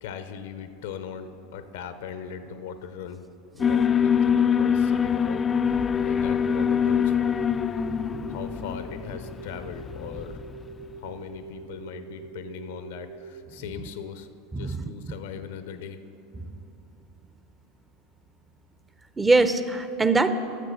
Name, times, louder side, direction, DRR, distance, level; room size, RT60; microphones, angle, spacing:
voice 1, 0.0-3.3 3.6-5.5 5.9-7.4 8.3-10.4 11.0-14.3 14.6-16.0, left 7 dB, 75° left, 10 dB, 0.7 m, -39 dB
Alarm, 3.6-10.7, left 7 dB, 25° left, 0.3 m, -24 dB
sound 1, 6.5-13.4, right 5 dB, 65° right, 0.5 m, -43 dB
voice 2, 14.5-14.8 16.4-16.5 19.2-20.3, right 3 dB, 15° right, 11 dB, 0.6 m, -22 dB
11.0 x 6.5 x 6.3 m, 2.7 s
hypercardioid pair, 95°, 0 cm